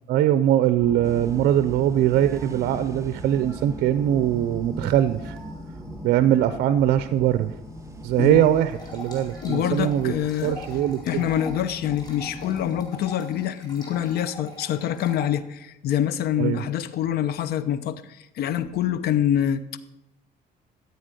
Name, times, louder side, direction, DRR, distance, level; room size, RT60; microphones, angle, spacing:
voice 1, 0.1-5.3 6.0-7.5 8.0-10.1 10.4-11.3 16.4-16.6, right 11 dB, 75° right, 12 dB, 0.6 m, -21 dB
sound 1, 0.8-12.9, left 1 dB, 5° left, 3.0 m, -41 dB
sound 2, 1.0-8.9, right 2 dB, 20° right, 0.8 m, -41 dB
sound 3, 8.7-15.3, left 1 dB, 25° left, 4.8 m, -43 dB
voice 2, 9.4-10.6 11.0-19.8, left 10 dB, 65° left, 14 dB, 0.9 m, -25 dB
13.5 x 8.3 x 6.6 m, 0.89 s
cardioid pair, 110°, 17 cm